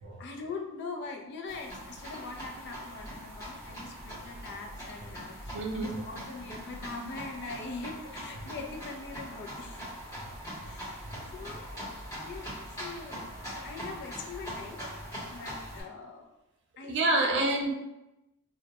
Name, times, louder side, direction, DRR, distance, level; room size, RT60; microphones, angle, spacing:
voice 1, 0.2-9.8 10.6-11.0 11.3-13.3 13.6-14.8 15.3-16.3 16.8-17.3, left 3 dB, 50° left, 2 dB, 0.4 m, -42 dB
sound 1, 1.5-15.8, equal, 15° left, 0.9 m, -42 dB
voice 2, 5.5-6.0 10.2-10.3 10.6-10.7 11.0-11.3 16.9-17.7, right 2 dB, 55° right, 1 dB, 0.4 m, -29 dB
2.2 x 2.0 x 2.8 m, 0.94 s
head